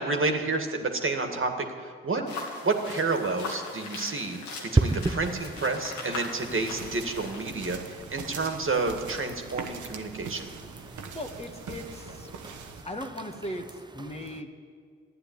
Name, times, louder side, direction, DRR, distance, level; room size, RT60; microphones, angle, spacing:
voice 1, 0.0-2.2 2.6-4.4 4.7-10.5, right 3 dB, 45° right, 4 dB, 2.0 m, -30 dB
sound 1, 2.3-7.4, left 3 dB, 85° left, 2.3 m, -40 dB
sound 2, 4.8-14.4, right 2 dB, 15° right, 0.8 m, -35 dB
sound 3, 6.4-12.8, right 5 dB, 80° right, 1.4 m, -42 dB
voice 2, 11.1-14.5, left 1 dB, 20° left, 3 dB, 1.7 m, -39 dB
12.5 x 9.6 x 9.6 m, 2.1 s
supercardioid pair, 50°, 29 cm